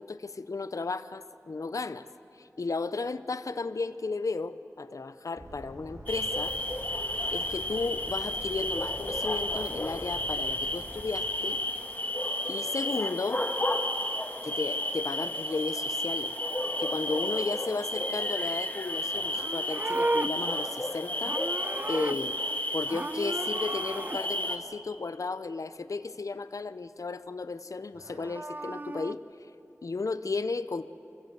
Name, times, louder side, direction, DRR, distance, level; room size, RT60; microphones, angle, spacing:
voice 1, 0.0-2.1 2.4-6.6 7.3-11.6 12.5-13.4 14.4-16.3 16.8-21.4 21.9-22.4 22.7-29.2 29.8-30.9, left 3 dB, 85° left, 13 dB, 0.5 m, -34 dB
sound 1, 5.4-11.0, right 1 dB, 75° right, 3.2 m, -46 dB
sound 2, 6.1-24.6, left 1 dB, 30° left, 1.7 m, -32 dB
Livestock farm animals working animals, 19.2-22.6 22.9-24.2 28.0-29.1, right 2 dB, 35° right, 0.5 m, -34 dB
25.0 x 14.5 x 7.9 m, 2.9 s
wide cardioid pair, 55°, 6 cm